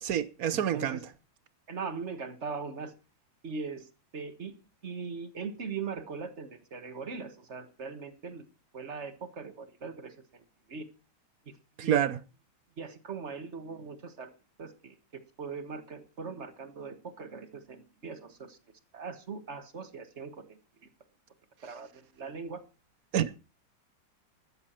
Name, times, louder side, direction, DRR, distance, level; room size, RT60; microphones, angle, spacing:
voice 1, 0.0-1.0 11.8-12.2 23.1-23.4, right 10 dB, 60° right, 1.0 m, -28 dB
voice 2, 0.5-1.0 1.7-2.9 3.4-3.9 4.1-4.5 4.8-8.4 8.7-10.4 10.7-10.9 11.8-12.0 12.8-14.3 14.6-14.9 15.4-18.6 18.9-20.6 21.6-21.9 22.2-22.6, right 5 dB, 40° right, 1.5 m, -40 dB
13.5 x 13.0 x 4.4 m
omnidirectional pair, 2.2 m